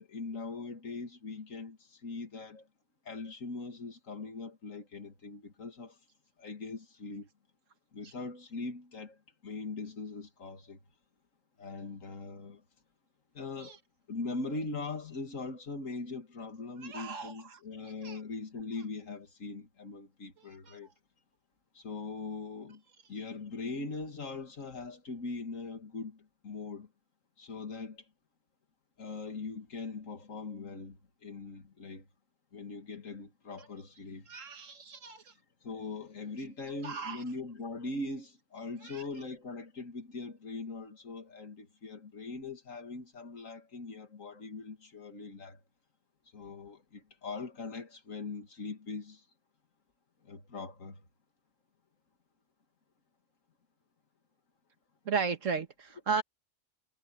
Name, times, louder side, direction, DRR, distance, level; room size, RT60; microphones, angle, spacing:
voice 1, 0.0-2.7 3.0-6.0 6.4-7.3 7.9-10.8 11.6-12.6 13.3-13.8 14.1-20.9 21.7-22.8 23.1-26.9 27.4-28.0 29.0-32.1 32.5-34.3 35.6-45.6 46.3-49.2 50.2-51.0, left 3 dB, 85° left, 2.5 m, -41 dB
voice 2, 16.8-17.3 18.0-18.2 20.7-20.8 34.3-35.2 36.8-37.2 38.9-39.0 55.1-56.2, right 5 dB, 75° right, 1.9 m, -34 dB
omnidirectional pair, 1.3 m